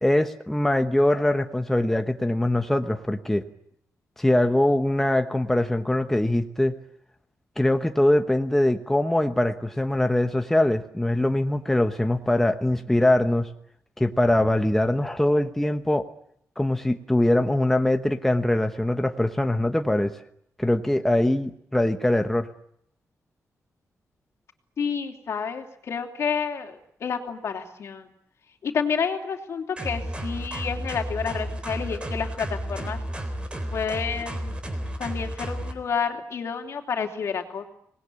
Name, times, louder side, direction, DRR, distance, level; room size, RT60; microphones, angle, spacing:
voice 1, 0.0-3.4 4.2-6.7 7.6-13.5 14.0-16.0 16.6-20.1 20.6-22.5, left 1 dB, 5° left, 6 dB, 1.1 m, -22 dB
voice 2, 24.8-28.1 28.6-33.0 33.7-34.5 35.0-37.7, left 6 dB, 60° left, 4 dB, 3.0 m, -29 dB
sound 1, 29.8-35.7, equal, 20° right, 3.9 m, -32 dB
26.0 x 20.0 x 9.7 m, 0.72 s
wide cardioid pair, 170°, 5 cm